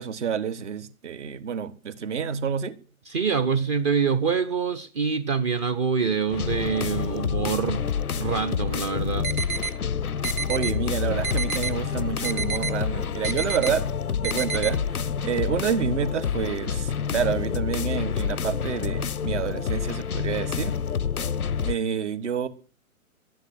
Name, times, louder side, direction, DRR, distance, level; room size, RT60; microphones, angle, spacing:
voice 1, 0.0-2.8 10.5-13.8 14.2-20.7 21.6-22.5, right 7 dB, 55° right, 1.5 m, -28 dB
voice 2, 3.1-7.9 8.1-9.3, right 6 dB, 20° right, 0.6 m, -25 dB
sound 1, 6.3-21.7, left 7 dB, 90° left, 0.6 m, -28 dB
sound 2, 9.2-9.7 10.2-10.7 11.2-11.7 12.2-12.7 13.2-13.7 14.2-14.7, right 5 dB, 80° right, 1.1 m, -29 dB
12.5 x 9.8 x 7.9 m
figure-of-eight pair, 115°, 43 cm